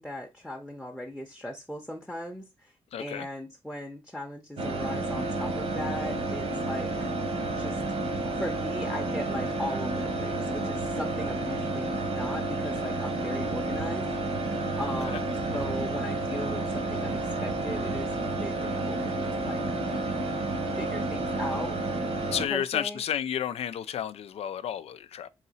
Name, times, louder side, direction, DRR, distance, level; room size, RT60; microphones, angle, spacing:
voice 1, 0.0-2.7 3.0-6.9 7.5-7.8 8.3-14.5 14.8-19.6 20.8-21.8 22.5-23.0, left 1 dB, 5° left, 0.6 m, -38 dB
voice 2, 2.9-3.3 15.0-15.2 22.3-25.3, left 9 dB, 90° left, 0.4 m, -31 dB
sound 1, 4.6-22.5, right 2 dB, 80° right, 1.2 m, -30 dB
3.9 x 2.8 x 4.1 m
wide cardioid pair, 120°, 10 cm